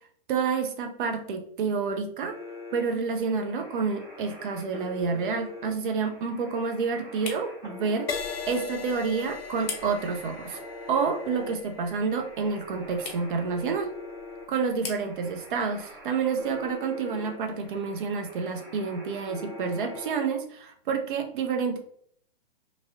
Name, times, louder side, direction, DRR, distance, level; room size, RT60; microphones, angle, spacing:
voice 1, 0.3-2.4 2.7-10.6 10.9-13.9 14.5-21.8, right 5 dB, 55° right, 5 dB, 0.6 m, -29 dB
sound 1, 2.3-20.3, left 2 dB, 15° right, 1.3 m, -44 dB
sound 2, 3.7-18.5, left 5 dB, 35° left, 0.8 m, -47 dB
Crash cymbal, 8.1-15.7 16.4-16.7, left 6 dB, 75° left, 0.6 m, -40 dB
3.0 x 2.7 x 2.5 m, 0.63 s
figure-of-eight pair, 120°, 30 cm